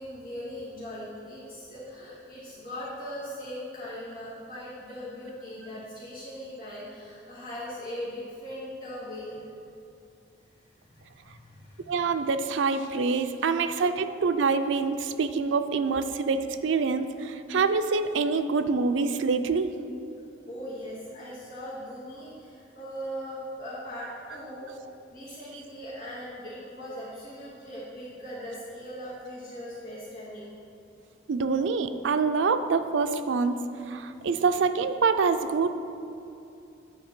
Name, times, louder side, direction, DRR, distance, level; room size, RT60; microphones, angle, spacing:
voice 1, 0.0-9.5 10.8-12.0 13.9-14.0 16.0-16.1 20.5-24.7 25.1-30.6, equal, 50° left, -10 dB, 2.1 m, -40 dB
voice 2, 11.9-16.4 16.6-19.7 31.3-33.6 33.9-35.7, right 4 dB, 90° right, 9 dB, 0.4 m, -25 dB
9.4 x 4.3 x 5.9 m, 2.7 s
head